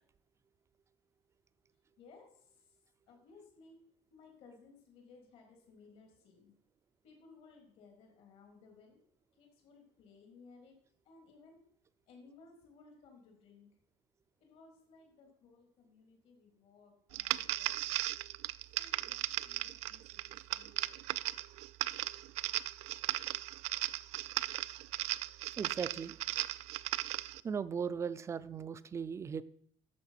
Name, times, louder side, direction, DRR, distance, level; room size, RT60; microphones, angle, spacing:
voice 1, 2.0-2.8 3.1-3.8 4.1-6.5 7.0-9.0 9.3-10.8 11.0-11.6 12.1-13.8 14.4-18.1 18.7-21.0, left 4 dB, 70° left, 2 dB, 3.2 m, -60 dB
sound 1, 17.1-27.4, right 17 dB, 85° right, 0.4 m, -37 dB
voice 2, 25.6-26.1 27.4-29.4, right 6 dB, 25° right, 14 dB, 0.5 m, -37 dB
11.5 x 7.3 x 5.8 m, 0.66 s
cardioid pair, 150°, 11 cm